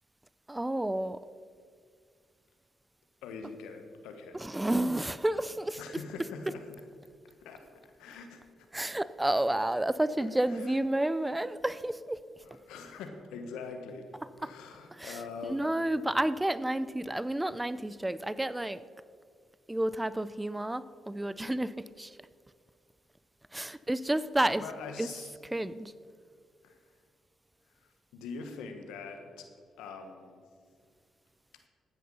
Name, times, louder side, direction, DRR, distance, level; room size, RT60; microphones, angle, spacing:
voice 1, 0.5-1.2 4.3-5.8 8.7-12.2 14.4-14.5 15.0-15.2 15.5-18.8 19.7-22.2 23.5-24.6 25.0-25.1 25.5-25.9, right 1 dB, 15° right, 16 dB, 0.5 m, -30 dB
voice 2, 3.2-4.4 5.8-6.7 7.4-7.7 8.0-8.7 10.2-10.7 12.4-14.1 14.4-15.7 24.6-25.3 26.6-26.8 27.8-29.5 29.8-30.4, left 4 dB, 80° left, 6 dB, 1.4 m, -43 dB
13.5 x 9.4 x 5.6 m, 2.2 s
hypercardioid pair, 45°, 0 cm